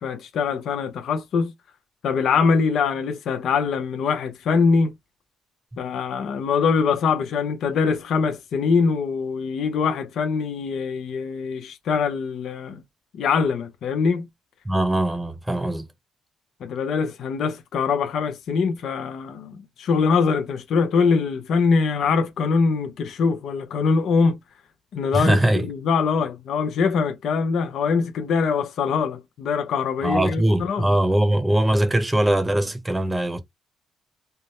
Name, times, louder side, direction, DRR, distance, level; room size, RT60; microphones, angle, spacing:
voice 1, 0.0-1.5 2.0-4.9 5.8-12.8 13.1-14.3 16.6-24.4 24.9-30.9, left 5 dB, 70° left, 0.7 m, -23 dB
voice 2, 14.6-15.9 25.1-25.7 30.0-33.4, right 1 dB, 10° right, 0.9 m, -21 dB
3.4 x 2.1 x 4.2 m
cardioid pair, 90°, 0 cm